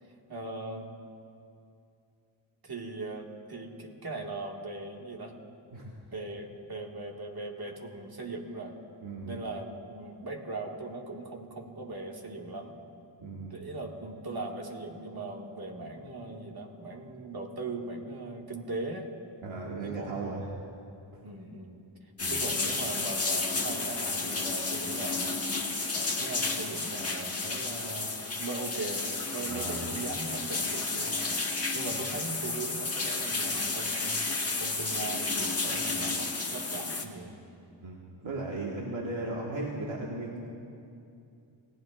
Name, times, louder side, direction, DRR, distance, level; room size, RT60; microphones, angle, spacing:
voice 1, 0.3-0.9 2.6-5.4 6.1-8.8 9.3-12.8 13.5-19.1 19.8-20.5 21.2-21.8 22.3-25.4 25.9-31.4 31.7-37.3, right 2 dB, 50° right, 0 dB, 2.0 m, -39 dB
voice 2, 9.0-9.4 13.2-13.5 19.4-20.5 21.1-21.2 22.2-22.4 29.5-29.9 31.9-32.0 37.8-40.4, right 2 dB, 85° right, -4 dB, 1.7 m, -36 dB
sound 1, 22.2-37.0, left 3 dB, 30° left, 1.3 m, -32 dB
30.0 x 18.5 x 2.5 m, 2.6 s
wide cardioid pair, 120°, 46 cm